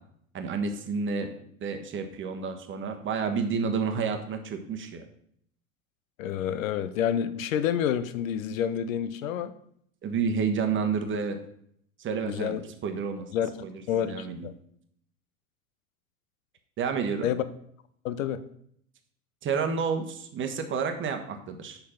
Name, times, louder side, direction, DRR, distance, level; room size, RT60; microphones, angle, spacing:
voice 1, 0.3-1.3 1.6-5.0 10.0-11.4 12.0-12.6 12.8-13.2 13.6-14.5 16.8-17.3 19.4-21.8, right 5 dB, 25° right, 5 dB, 1.2 m, -30 dB
voice 2, 6.2-9.5 12.3-12.7 13.3-13.5 13.9-14.5 17.2-17.4 18.0-18.4, left 9 dB, 65° left, 13 dB, 0.8 m, -28 dB
6.5 x 5.6 x 5.7 m, 0.68 s
figure-of-eight pair, 85°, 44 cm